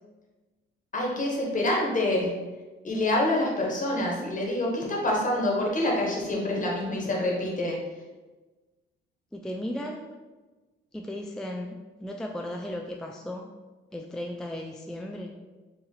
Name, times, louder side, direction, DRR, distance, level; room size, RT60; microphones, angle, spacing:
voice 1, 0.9-2.3 2.8-7.8, left 1 dB, 40° left, -2 dB, 1.3 m, -26 dB
voice 2, 9.3-10.0 10.9-11.7 12.0-13.5 13.9-15.3, left 1 dB, 5° left, 1 dB, 0.3 m, -35 dB
4.5 x 2.8 x 3.2 m, 1.2 s
cardioid pair, 90°, 20 cm